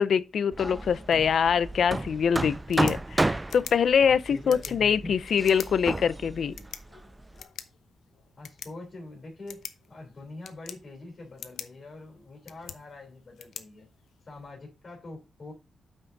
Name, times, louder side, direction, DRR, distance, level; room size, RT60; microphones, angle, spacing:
voice 1, 0.0-6.5, left 7 dB, 55° left, 0.5 m, -24 dB
Hammer, 0.5-7.4, right 2 dB, 10° right, 0.3 m, -32 dB
sound 1, 2.5-14.5, left 8 dB, 85° left, 0.9 m, -47 dB
voice 2, 4.0-5.2 6.4-6.7 8.4-13.9 14.2-15.5, left 2 dB, 35° left, 3.7 m, -44 dB
8.9 x 5.9 x 4.0 m
wide cardioid pair, 165°, 0 cm